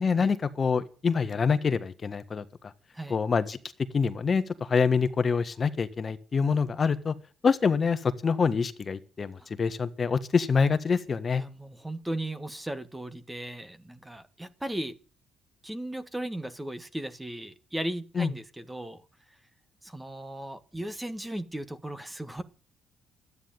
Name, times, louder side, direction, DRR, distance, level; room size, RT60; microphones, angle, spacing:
voice 1, 0.0-2.7 3.1-3.6 3.9-7.1 7.4-11.4 18.1-18.3, left 5 dB, 40° left, 1.5 m, -26 dB
voice 2, 11.4-15.0 15.6-19.0 19.8-22.4, right 1 dB, 10° right, 1.6 m, -36 dB
12.5 x 9.8 x 9.1 m
cardioid pair, 90°, 0 cm